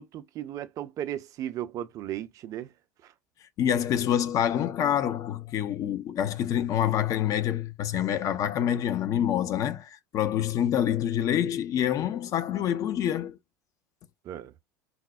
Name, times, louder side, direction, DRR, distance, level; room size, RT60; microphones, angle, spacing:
voice 1, 0.0-2.7 3.0-3.1 14.2-14.5, right 11 dB, 35° right, 0.5 m, -36 dB
voice 2, 3.6-13.4, left 10 dB, 35° left, 0.5 m, -26 dB
4.1 x 2.0 x 2.3 m
figure-of-eight pair, 75°, 9 cm